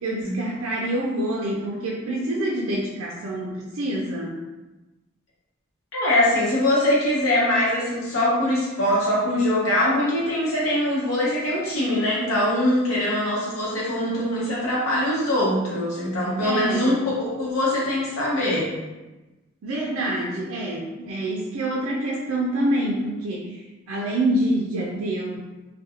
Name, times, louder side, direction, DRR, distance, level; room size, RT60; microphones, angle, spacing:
voice 1, 0.0-4.3 16.4-17.0 19.6-23.6 23.9-25.4, right 1 dB, 85° right, -3 dB, 0.4 m, -26 dB
voice 2, 5.9-18.7, left 1 dB, 85° left, -6 dB, 0.8 m, -22 dB
2.4 x 2.2 x 2.8 m, 1.1 s
head